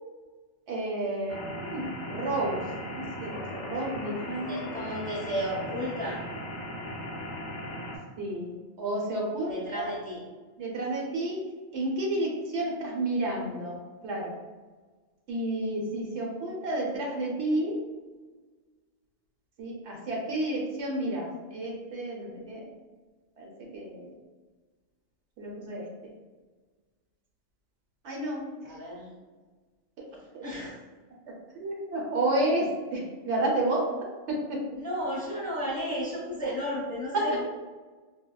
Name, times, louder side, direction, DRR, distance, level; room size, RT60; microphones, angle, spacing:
voice 1, 0.7-2.6 3.0-4.6 8.2-9.9 10.6-11.4 11.7-14.3 15.3-17.7 19.6-22.6 23.4-24.1 25.4-25.9 28.0-28.7 30.0-30.1 30.3-30.4 31.5-33.9 34.3-34.6 36.4-36.5 37.1-37.2, right 1 dB, 70° right, -2 dB, 0.9 m, -31 dB
sound 1, 1.3-8.0, left 1 dB, 50° left, 0.6 m, -38 dB
voice 2, 4.5-6.2 9.5-10.2 28.6-29.1 30.4-30.7 34.7-37.4, equal, 10° left, -6 dB, 0.8 m, -33 dB
4.4 x 2.1 x 2.3 m, 1.3 s
omnidirectional pair, 1.2 m